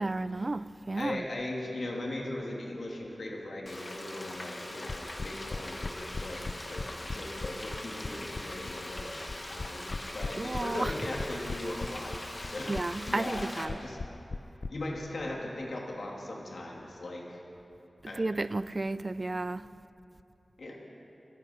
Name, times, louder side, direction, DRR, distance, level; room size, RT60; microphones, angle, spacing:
voice 1, 0.0-1.2 10.4-11.1 12.7-13.8 18.0-19.7, right 2 dB, 40° right, 0.3 m, -32 dB
voice 2, 1.0-6.4 6.7-9.9 10.1-12.2 12.4-12.8 13.1-14.0 14.7-17.4 18.1-18.3 20.6-20.8, left 1 dB, 75° left, 1.9 m, -38 dB
Frying (food), 3.7-13.7, left 1 dB, 30° left, 1.3 m, -42 dB
sound 1, 4.9-14.7, left 3 dB, 55° left, 0.4 m, -37 dB
24.5 x 8.3 x 5.5 m
wide cardioid pair, 80°, 0 cm